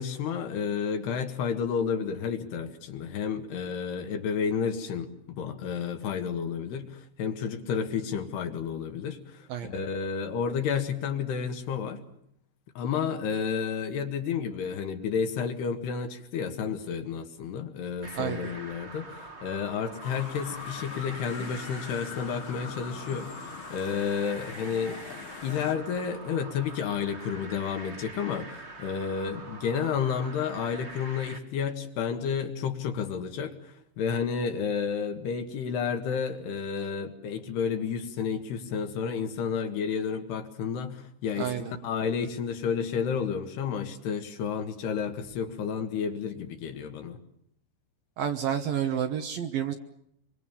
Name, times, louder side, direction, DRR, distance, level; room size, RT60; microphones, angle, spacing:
voice 1, 0.0-12.0 12.8-25.0 25.4-47.2, left 6 dB, 70° left, 6 dB, 3.6 m, -31 dB
sound 1, 18.0-31.4, right 2 dB, 35° right, 1.0 m, -44 dB
voice 2, 18.2-18.5 41.4-41.7 48.2-49.7, right 9 dB, 65° right, 6 dB, 2.5 m, -30 dB
sound 2, 20.0-25.8, left 8 dB, 85° left, 4.4 m, -42 dB
24.5 x 24.5 x 7.1 m, 0.73 s
omnidirectional pair, 5.2 m